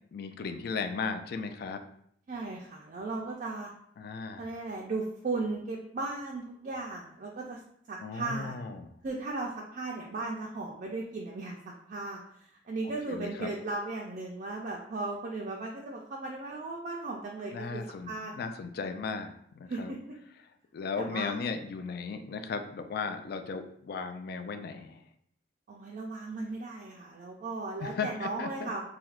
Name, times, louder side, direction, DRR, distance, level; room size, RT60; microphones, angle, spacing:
voice 1, 0.1-1.8 4.0-4.5 8.0-8.9 13.1-13.5 17.5-19.9 20.7-25.0 27.8-28.7, left 5 dB, 60° left, 7 dB, 0.3 m, -36 dB
voice 2, 2.3-3.7 4.4-7.6 7.9-8.6 9.0-18.3 19.7-20.0 21.0-21.4 25.7-28.8, right 3 dB, 50° right, -1 dB, 0.4 m, -36 dB
3.2 x 2.7 x 2.4 m, 0.69 s
head